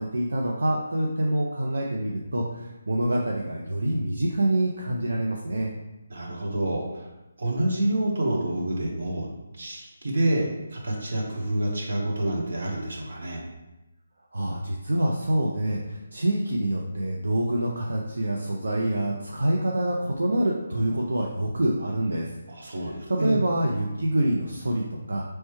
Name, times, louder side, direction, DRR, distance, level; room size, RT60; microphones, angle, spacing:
voice 1, 0.0-5.7 14.3-22.3 22.8-25.2, right 1 dB, 85° right, -1 dB, 0.5 m, -26 dB
voice 2, 6.1-6.9 7.4-9.3 9.6-13.4 22.5-23.4, right 1 dB, 65° right, -2 dB, 1.2 m, -27 dB
4.4 x 3.2 x 3.1 m, 1.0 s
hypercardioid pair, 160°, 0 cm